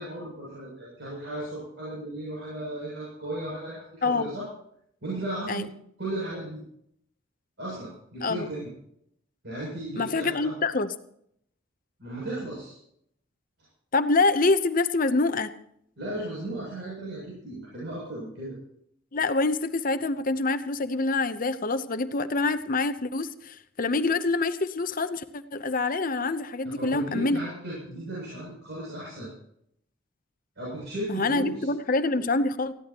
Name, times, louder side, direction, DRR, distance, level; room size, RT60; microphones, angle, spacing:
voice 1, 0.0-4.4 5.0-5.7 6.0-6.6 7.6-8.7 9.4-10.6 12.0-12.8 16.0-18.6 26.6-29.3 30.6-31.7, right 1 dB, 60° right, -6 dB, 7.4 m, -35 dB
voice 2, 10.0-10.9 13.9-15.5 19.1-25.2 25.5-27.4 31.1-32.7, left 3 dB, 45° left, 11 dB, 0.8 m, -26 dB
20.0 x 15.0 x 3.0 m, 0.72 s
head